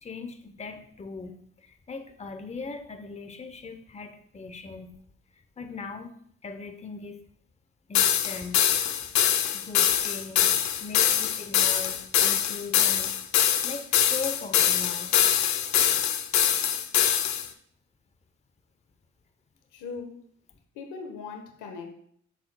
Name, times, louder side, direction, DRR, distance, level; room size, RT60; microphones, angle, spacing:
voice 1, 0.0-5.0 5.6-6.1 6.4-7.2 7.9-8.7 9.5-13.1 13.6-15.2, left 4 dB, 20° left, 7 dB, 0.7 m, -39 dB
sound 1, 7.9-17.5, left 10 dB, 65° left, 0.6 m, -23 dB
voice 2, 19.7-20.2 20.7-21.9, left 5 dB, 90° left, 5 dB, 1.1 m, -39 dB
7.3 x 6.6 x 2.2 m, 0.64 s
cardioid pair, 90°, 30 cm